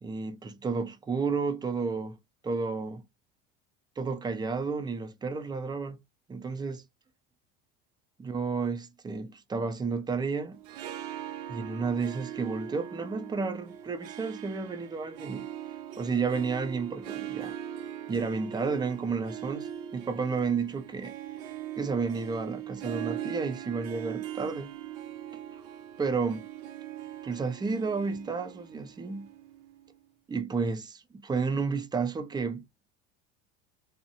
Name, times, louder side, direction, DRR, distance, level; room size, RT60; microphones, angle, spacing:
voice 1, 0.0-3.1 4.0-6.0 6.3-6.8 8.2-10.6 11.5-15.5 16.0-17.6 18.1-21.2 21.8-24.7 25.5-25.6 26.0-26.5 27.2-29.3 30.3-32.6, right 4 dB, 15° right, 0.4 m, -31 dB
Harp, 10.5-29.9, right 11 dB, 85° right, 0.6 m, -41 dB
2.6 x 2.1 x 2.7 m
supercardioid pair, 110°, 29 cm